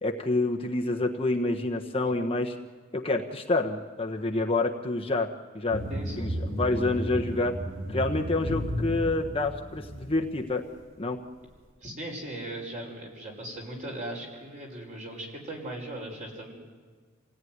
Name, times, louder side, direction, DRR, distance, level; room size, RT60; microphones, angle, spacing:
voice 1, 0.0-2.6 2.9-5.3 5.5-5.8 6.2-7.6 7.9-10.6 11.0-11.2, left 2 dB, 30° left, 3 dB, 1.2 m, -28 dB
sound 1, 5.7-10.3, equal, 85° right, 5.0 m, -33 dB
voice 2, 5.9-6.3 11.8-16.5, right 1 dB, 40° right, 0 dB, 5.8 m, -38 dB
28.0 x 17.5 x 9.6 m, 1.5 s
head